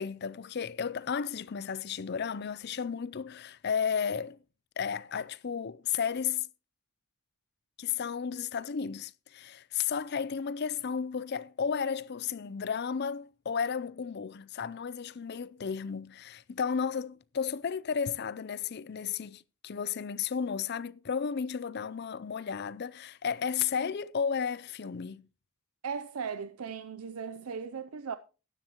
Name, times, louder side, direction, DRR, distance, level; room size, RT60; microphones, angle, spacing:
voice 1, 0.0-4.4 4.8-6.5 7.8-25.3, left 6 dB, 50° left, 0.5 m, -33 dB
voice 2, 25.8-28.2, right 6 dB, 90° right, 0.5 m, -37 dB
13.0 x 11.0 x 3.0 m
head